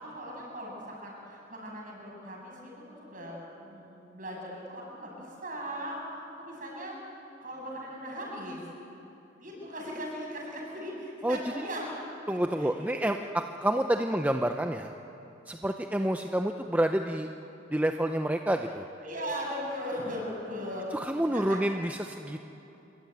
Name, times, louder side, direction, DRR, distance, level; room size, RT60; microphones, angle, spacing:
voice 1, 0.0-6.0 6.4-7.0 7.4-8.6 9.4-12.0 12.3-12.9 19.0-20.9 21.3-21.6, equal, 45° right, -2 dB, 7.7 m, -38 dB
voice 2, 11.2-11.6 12.3-14.9 15.5-17.3 17.7-18.8 20.9-22.4, right 1 dB, 10° right, 5 dB, 0.6 m, -28 dB
26.0 x 23.0 x 9.3 m, 2.9 s
head